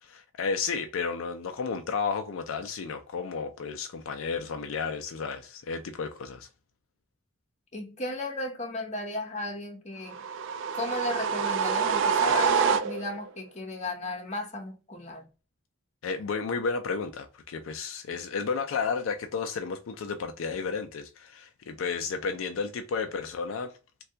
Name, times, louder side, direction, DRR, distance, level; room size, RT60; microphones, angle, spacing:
voice 1, 0.0-6.5 16.0-23.8, left 5 dB, 75° left, 0.4 m, -32 dB
voice 2, 7.7-10.2 10.7-15.3, left 2 dB, 35° left, 0.8 m, -35 dB
sound 1, 10.1-13.3, right 6 dB, 65° right, 0.3 m, -26 dB
3.2 x 2.3 x 2.7 m
head